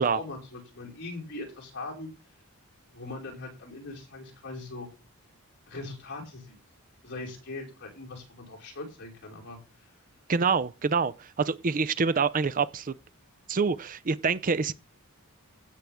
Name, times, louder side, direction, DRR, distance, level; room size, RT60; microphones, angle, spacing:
voice 1, 0.0-2.1 2.9-4.9 5.7-6.6 7.0-9.6, left 2 dB, 50° left, 5.0 m, -40 dB
voice 2, 10.3-12.9 13.5-14.7, right 5 dB, 35° right, 0.5 m, -26 dB
16.0 x 7.6 x 3.6 m
head